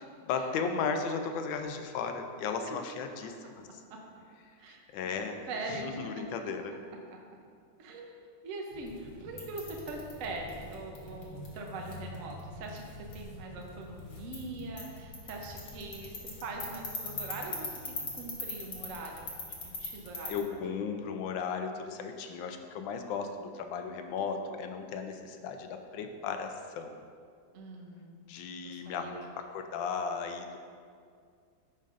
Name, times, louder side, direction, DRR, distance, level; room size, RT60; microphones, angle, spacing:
voice 1, 0.0-3.8 4.7-5.4 5.7-6.8 20.3-27.1 28.3-30.6, left 5 dB, 85° left, 6 dB, 1.3 m, -36 dB
voice 2, 5.5-6.3 7.8-12.8 13.1-19.3 19.6-20.6 27.5-29.1, right 2 dB, 60° right, 1 dB, 0.9 m, -42 dB
sound 1, 8.7-20.4, left 3 dB, 70° left, 1.9 m, -43 dB
10.5 x 5.3 x 2.5 m, 2.2 s
omnidirectional pair, 2.1 m